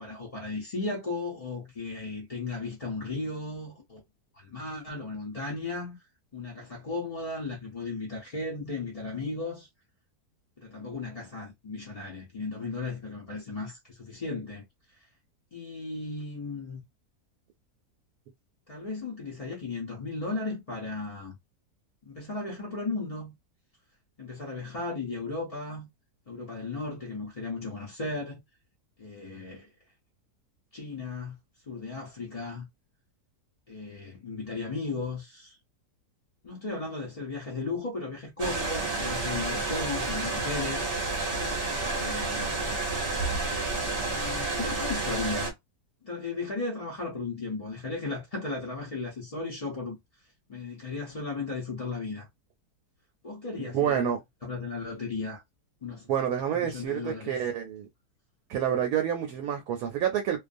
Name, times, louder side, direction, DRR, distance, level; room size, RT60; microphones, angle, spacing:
voice 1, 0.0-4.0 4.3-6.0 6.3-9.7 10.6-14.6 15.5-16.8 18.7-21.4 22.0-23.3 24.2-25.9 26.3-28.4 29.0-29.7 30.7-31.4 31.7-32.7 33.7-35.6 36.4-40.9 41.9-42.5 44.1-45.5 46.0-50.0 50.5-52.3 53.2-54.1 54.4-55.4 55.8-56.1 56.5-57.4, left 3 dB, 45° left, 0.4 m, -35 dB
sound 1, 38.4-45.5, right 3 dB, 45° right, 0.8 m, -30 dB
voice 2, 53.6-54.2 56.1-57.9 58.5-60.4, right 9 dB, 75° right, 1.0 m, -28 dB
2.5 x 2.3 x 2.5 m
omnidirectional pair, 1.7 m